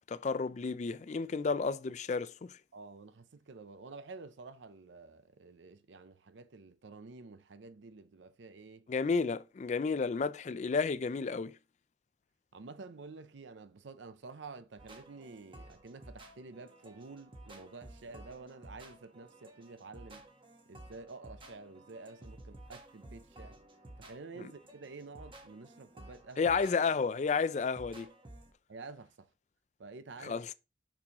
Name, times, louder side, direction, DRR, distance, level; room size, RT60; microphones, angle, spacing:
voice 1, 0.1-2.5 8.9-11.6 24.4-24.5 26.4-28.1 30.2-30.5, left 4 dB, 40° left, 0.3 m, -32 dB
voice 2, 2.7-8.9 12.5-20.3 20.7-23.6 24.0-26.5 28.7-29.3 29.8-30.4, right 3 dB, 75° right, 0.6 m, -50 dB
sound 1, 14.8-28.5, right 1 dB, 30° right, 1.1 m, -54 dB
6.3 x 5.9 x 2.9 m
head